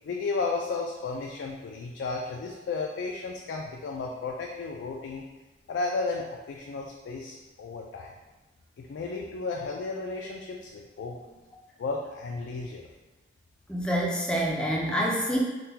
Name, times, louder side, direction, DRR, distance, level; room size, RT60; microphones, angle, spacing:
voice 1, 0.0-5.2 5.7-8.1 8.8-11.2 11.8-12.9, left 3 dB, 80° left, 0 dB, 0.3 m, -33 dB
voice 2, 13.7-15.4, equal, 5° left, -3 dB, 0.4 m, -27 dB
3.7 x 2.2 x 2.7 m, 1.2 s
head